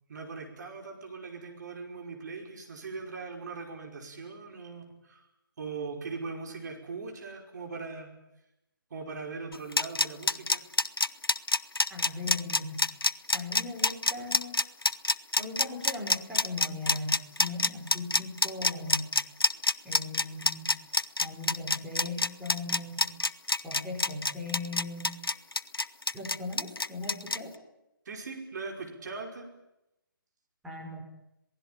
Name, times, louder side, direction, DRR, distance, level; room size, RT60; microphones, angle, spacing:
voice 1, 0.1-5.3 5.6-8.1 8.9-10.6 28.1-29.5, right 4 dB, 50° right, 2 dB, 5.4 m, -40 dB
sound 1, 9.5-27.4, left 3 dB, 85° left, 1.0 m, -26 dB
voice 2, 11.9-12.8 13.3-14.6 15.4-19.1 19.8-20.8 21.2-23.1 23.6-25.1 26.1-27.5 30.6-31.0, left 2 dB, 5° right, -3 dB, 5.5 m, -38 dB
27.0 x 19.0 x 9.0 m, 0.89 s
figure-of-eight pair, 145°, 12 cm